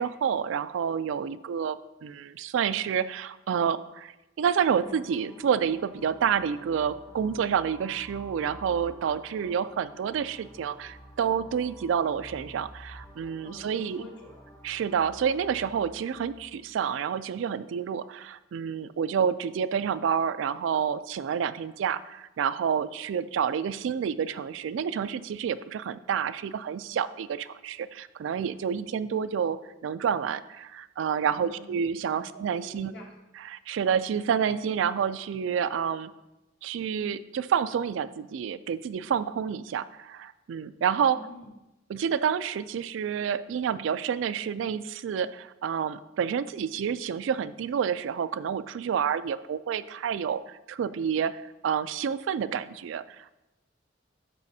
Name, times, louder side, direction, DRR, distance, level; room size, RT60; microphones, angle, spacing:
voice 1, 0.0-4.1 4.4-14.0 14.6-32.9 33.4-36.1 36.6-41.2 41.9-53.3, right 7 dB, 70° right, 14 dB, 0.3 m, -29 dB
sound 1, 4.8-16.8, equal, 10° left, 0.5 m, -50 dB
voice 2, 13.4-14.4 31.3-31.8 32.1-32.3 32.6-33.1 41.1-41.5, left 1 dB, 60° left, -2 dB, 1.9 m, -47 dB
12.5 x 4.9 x 2.7 m, 0.96 s
head